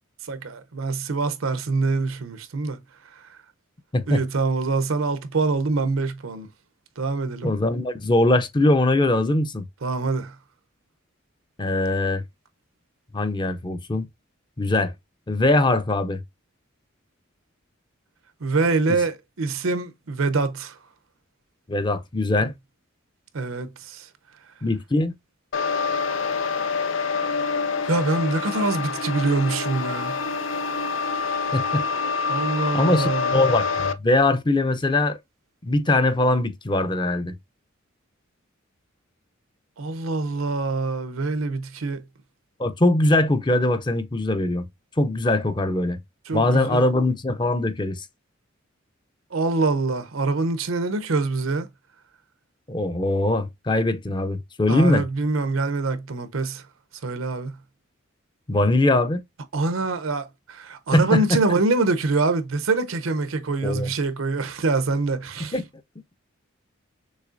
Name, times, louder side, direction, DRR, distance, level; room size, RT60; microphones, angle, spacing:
voice 1, 0.3-2.8 4.1-6.5 7.0-7.5 9.8-10.4 18.4-20.8 22.4-22.5 23.3-24.1 27.8-30.2 32.3-33.4 39.8-42.0 46.3-46.8 49.3-51.7 54.7-56.6 57.0-57.5 59.5-65.6, right 3 dB, 85° right, 0.7 m, -25 dB
voice 2, 7.4-9.7 11.6-12.2 13.1-14.1 14.6-14.9 15.3-16.2 21.7-22.5 24.6-25.1 31.5-31.8 32.7-35.2 35.6-37.3 42.6-44.7 45.0-46.0 46.3-48.1 52.7-55.0 58.5-59.2 60.9-61.4 63.6-63.9 65.4-65.7, left 2 dB, 25° left, 0.5 m, -21 dB
sound 1, 25.5-33.9, left 4 dB, 70° left, 0.5 m, -26 dB
6.4 x 3.1 x 2.5 m
head